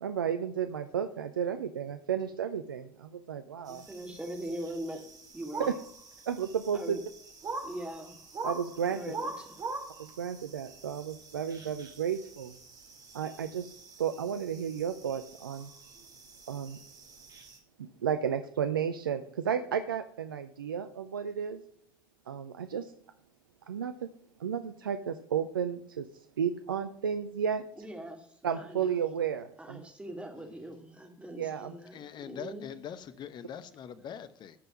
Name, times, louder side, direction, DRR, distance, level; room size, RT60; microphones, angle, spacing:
voice 1, 0.0-3.9 5.6-5.7 6.3-7.0 8.4-9.1 10.0-12.5 13.1-15.7 16.5-16.8 17.8-21.6 22.3-22.9 23.7-24.1 24.4-26.1 26.4-27.9 28.4-29.9 31.4-31.7, right 8 dB, 80° right, 9 dB, 0.5 m, -33 dB
voice 2, 3.7-5.0 5.3-5.8 6.7-7.0 7.6-8.2 8.9-9.6 27.8-28.2 28.5-29.1 29.6-31.9 32.3-32.6, right 1 dB, 10° right, 3 dB, 2.6 m, -41 dB
sound 1, 3.7-17.6, right 3 dB, 35° right, 2.4 m, -44 dB
voice 3, 31.9-34.5, left 8 dB, 40° left, 13 dB, 0.9 m, -42 dB
13.5 x 5.5 x 5.9 m, 0.64 s
figure-of-eight pair, 65°, 11 cm